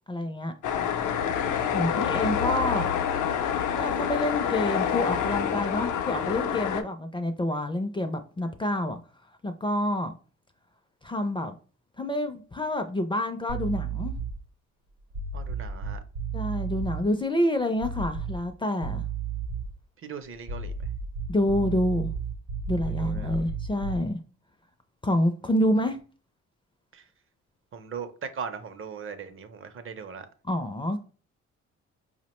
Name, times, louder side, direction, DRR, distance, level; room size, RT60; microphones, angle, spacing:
voice 1, 0.1-0.5 1.7-2.9 3.7-9.0 9.4-10.1 11.0-11.5 12.0-14.1 16.3-19.0 21.3-22.1 22.7-24.2 25.0-26.0 30.5-31.0, left 1 dB, 15° left, 0.4 m, -28 dB
sound 1, 0.6-6.8, left 8 dB, 75° left, 0.5 m, -27 dB
voice 2, 1.5-1.9 15.3-16.0 20.0-20.9 22.8-23.4 26.9-27.1 27.7-30.3, right 6 dB, 45° right, 0.5 m, -39 dB
sound 2, 13.5-14.4 15.1-17.0 17.8-18.5 18.8-19.8 20.4-24.1, right 5 dB, 80° right, 0.7 m, -33 dB
4.6 x 2.1 x 2.9 m
cardioid pair, 90°, 30 cm